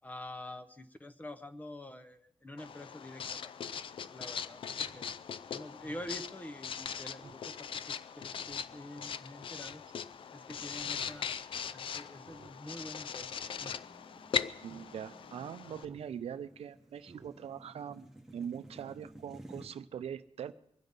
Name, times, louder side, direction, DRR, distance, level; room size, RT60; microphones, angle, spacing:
voice 1, 0.0-3.5 4.1-5.1 5.5-9.8 10.3-11.4 11.7-13.6, left 1 dB, 15° left, 12 dB, 0.6 m, -47 dB
Writing, 2.6-15.9, left 7 dB, 55° left, 0.5 m, -40 dB
sound 1, 3.7-3.8 4.1-4.2 4.9-5.4 5.9-6.2 6.8-19.7, right 1 dB, 5° right, 1.1 m, -57 dB
Speech synthesizer, 4.8-5.0 5.4-5.5 5.8-6.2 6.6-6.7 7.2-7.4 7.8-7.9 8.3-8.6 9.6-9.9 10.9-11.2 11.5-11.6 12.2-12.5 12.8-13.1 13.5-13.8 14.2-14.3 14.6-14.9 15.8-16.1 16.4-16.5 17.0-17.3 17.7-17.8, right 4 dB, 45° right, 0.9 m, -56 dB
voice 2, 14.6-18.1 18.3-20.5, right 8 dB, 70° right, 12 dB, 0.6 m, -42 dB
23.5 x 9.6 x 5.3 m, 0.76 s
wide cardioid pair, 180°, 11 cm